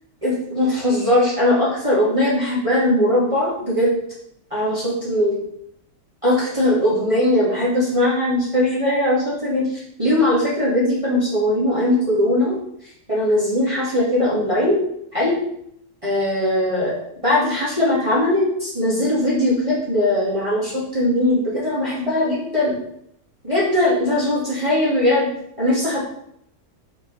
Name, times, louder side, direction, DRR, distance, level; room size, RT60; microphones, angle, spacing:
voice 1, 0.2-4.0 4.5-5.4 6.2-12.5 13.1-14.8 15.1-15.3 16.0-16.9 17.2-22.8 23.4-25.3 25.6-26.0, left 1 dB, 20° right, -8 dB, 2.6 m, -20 dB
6.1 x 5.1 x 6.5 m, 0.72 s
omnidirectional pair, 1.6 m